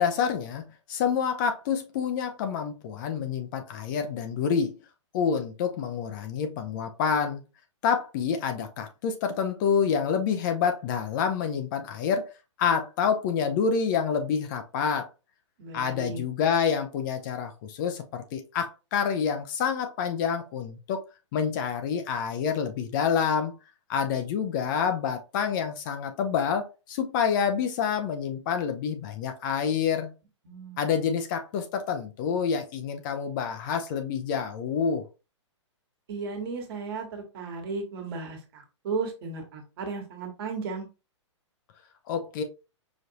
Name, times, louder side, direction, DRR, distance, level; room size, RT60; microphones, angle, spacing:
voice 1, 0.0-4.8 5.1-7.4 7.8-12.3 12.6-15.1 15.7-21.0 21.3-23.6 23.9-30.1 30.8-35.0 42.1-42.4, left 7 dB, 40° left, 0.6 m, -27 dB
voice 2, 15.6-16.2 30.4-30.9 36.1-40.9, right 4 dB, 50° right, 1.5 m, -35 dB
5.1 x 2.6 x 2.8 m
hypercardioid pair, 125°, 16 cm